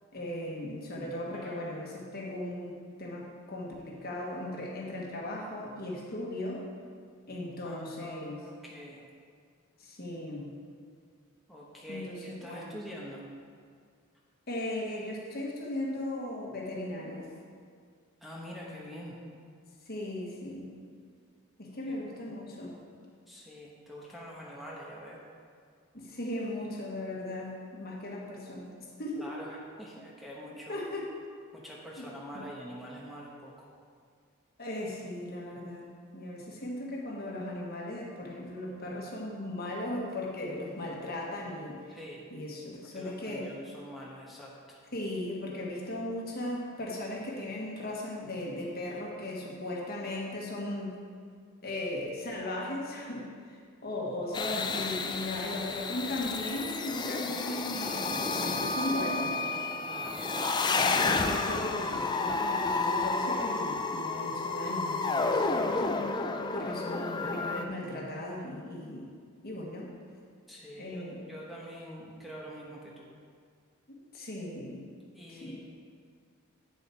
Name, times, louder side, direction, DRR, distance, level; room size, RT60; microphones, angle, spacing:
voice 1, 0.1-6.7 7.3-8.4 9.8-10.5 11.9-12.8 14.5-17.3 19.9-20.7 21.6-22.8 25.9-28.7 29.0-29.3 30.7-31.1 32.0-32.1 32.3-32.5 34.6-35.9 36.1-42.0 42.3-43.5 44.9-50.9 51.6-59.4 60.7-65.8 66.5-69.1 69.4-69.9 70.8-71.2 73.9-74.8 75.3-75.6, left 1 dB, 45° left, -2 dB, 1.4 m, -37 dB
voice 2, 1.3-1.7 7.6-9.1 11.5-13.3 18.2-19.2 21.9-22.0 22.2-22.4 23.3-25.2 29.2-30.8 31.5-33.7 41.9-42.3 42.9-44.8 59.9-60.3 65.6-66.0 70.5-73.1 75.1-75.6, equal, ahead, -5 dB, 1.0 m, -45 dB
sound 1, 54.3-67.6, left 3 dB, 20° left, 0.3 m, -31 dB
8.9 x 7.0 x 4.5 m, 2.1 s
head